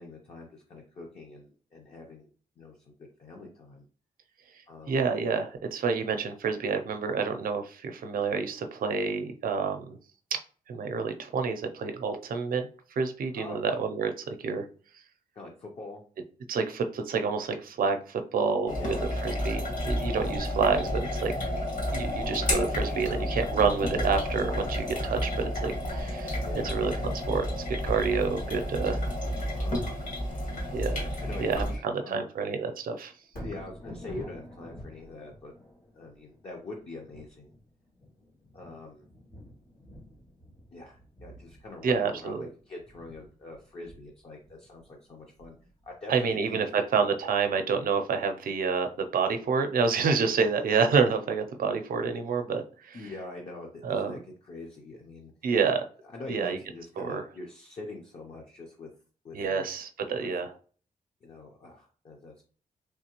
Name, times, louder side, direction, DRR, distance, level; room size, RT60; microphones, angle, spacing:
voice 1, 0.0-2.3 2.6-3.8 4.7-5.0 13.3-13.6 15.3-16.0 18.7-19.1 22.8-23.2 26.4-26.8 29.5-29.9 31.1-32.2 33.4-35.5 35.9-37.5 38.5-39.0 40.7-45.6 45.8-46.8 52.9-55.3 56.0-58.9 59.2-59.7 60.2-60.3 61.2-62.4, left 2 dB, 40° left, -1 dB, 0.6 m, -44 dB
voice 2, 4.9-10.0 10.3-10.4 10.7-12.7 13.0-14.7 16.5-19.0 19.2-21.3 21.9-26.4 26.6-29.0 30.7-31.0 31.4-33.1 41.8-42.4 46.1-53.0 53.8-54.1 55.4-55.8 56.3-56.6 57.0-57.2 59.3-60.5, right 5 dB, 75° right, 6 dB, 0.5 m, -28 dB
sound 1, 18.7-31.8, left 1 dB, 60° left, 1.7 m, -31 dB
Thunder, 33.2-47.4 47.9-48.0, equal, 80° left, 2.0 m, -49 dB
3.5 x 3.2 x 2.9 m, 0.41 s
wide cardioid pair, 160°, 15 cm